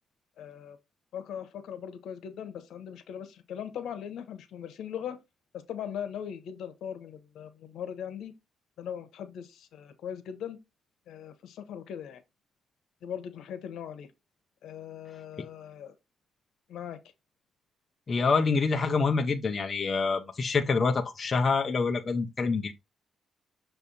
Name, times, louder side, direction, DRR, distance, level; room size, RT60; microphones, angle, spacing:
voice 1, 0.4-0.8 1.1-5.2 5.5-8.3 8.8-10.6 11.1-12.2 13.0-14.1 14.6-15.9 16.7-17.0, left 9 dB, 80° left, 1.2 m, -39 dB
voice 2, 18.1-22.7, left 4 dB, 30° left, 0.7 m, -26 dB
6.7 x 3.4 x 4.1 m
cardioid pair, 150°, 0 cm